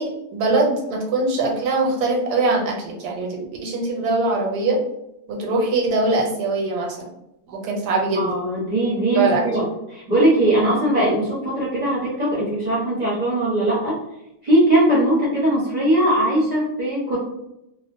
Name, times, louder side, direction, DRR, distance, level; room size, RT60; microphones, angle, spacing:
voice 1, 0.0-4.8 5.3-7.0 7.5-8.4 9.2-9.4, right 3 dB, 85° right, 0 dB, 1.2 m, -22 dB
voice 2, 8.1-14.0 14.4-17.2, right 1 dB, 35° right, -7 dB, 0.7 m, -20 dB
2.8 x 2.0 x 2.6 m, 0.85 s
omnidirectional pair, 1.7 m